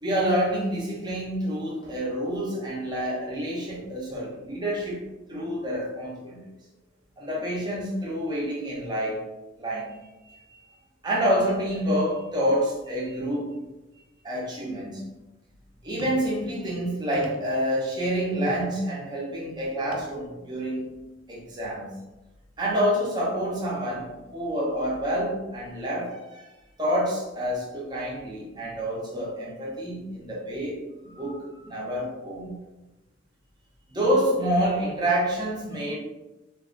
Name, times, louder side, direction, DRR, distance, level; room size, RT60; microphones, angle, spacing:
voice 1, 0.0-5.0 5.3-6.4 7.2-9.2 9.6-10.0 10.2-10.6 11.0-13.6 14.2-15.0 15.8-20.9 21.3-21.9 22.6-26.5 26.8-32.6 33.9-36.0, equal, 20° right, -4 dB, 0.7 m, -28 dB
sound 1, 16.0-16.3 17.1-17.6 18.5-18.8 19.9-20.2 20.8-20.9, right 1 dB, 90° right, 0.5 m, -40 dB
2.6 x 2.3 x 2.4 m, 1.0 s
head